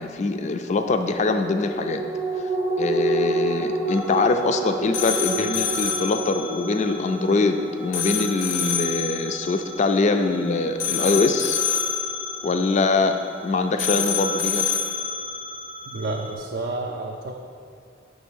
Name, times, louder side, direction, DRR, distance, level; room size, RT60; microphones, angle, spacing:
voice 1, 0.0-2.0 2.8-11.6 12.4-14.7, left 3 dB, 40° left, 7 dB, 0.3 m, -23 dB
sound 1, 1.2-12.0 12.4-12.5, right 3 dB, 15° right, 0.6 m, -30 dB
sound 2, 3.9-16.3, left 5 dB, 80° left, 0.7 m, -29 dB
voice 2, 15.9-17.4, right 2 dB, 60° right, 0 dB, 0.4 m, -30 dB
7.3 x 3.2 x 6.2 m, 2.4 s
head